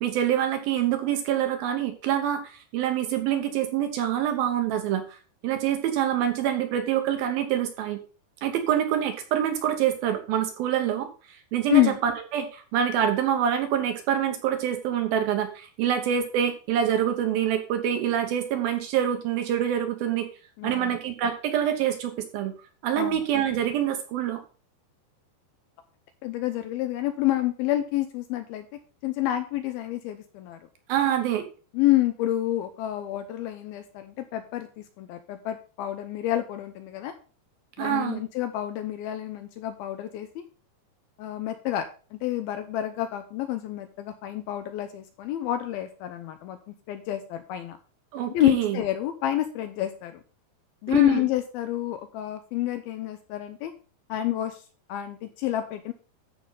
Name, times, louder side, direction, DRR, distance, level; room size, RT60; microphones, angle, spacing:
voice 1, 0.0-5.2 5.4-8.0 8.4-20.3 20.6-22.5 22.8-24.4 30.9-31.5 37.8-38.2 48.1-48.8 50.9-51.2, right 10 dB, 70° right, 6 dB, 2.5 m, -26 dB
voice 2, 20.6-21.0 23.0-23.2 26.2-28.7 29.0-30.6 31.7-37.1 37.8-40.4 41.2-47.8 48.3-50.2 50.8-53.7 54.1-54.6 54.9-55.9, left 14 dB, 80° left, 9 dB, 2.3 m, -28 dB
13.5 x 5.3 x 3.9 m, 0.37 s
omnidirectional pair, 4.8 m